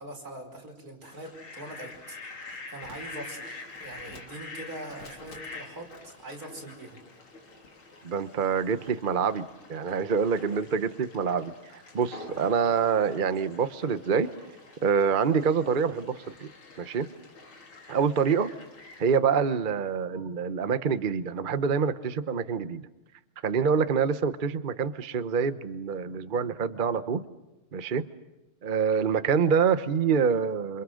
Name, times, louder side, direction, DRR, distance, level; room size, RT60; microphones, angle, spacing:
voice 1, 0.0-2.2 2.5-7.0, right 1 dB, 45° right, 2 dB, 5.7 m, -42 dB
Fowl, 1.0-19.2, left 3 dB, 75° left, 4.1 m, -46 dB
voice 2, 8.0-14.3 14.8-16.5 16.8-17.1 17.9-18.5 19.0-22.9 23.4-27.2 27.7-28.0 28.6-30.8, right 6 dB, 60° right, 11 dB, 0.5 m, -26 dB
27.5 x 27.5 x 6.4 m, 1.0 s
omnidirectional pair, 2.3 m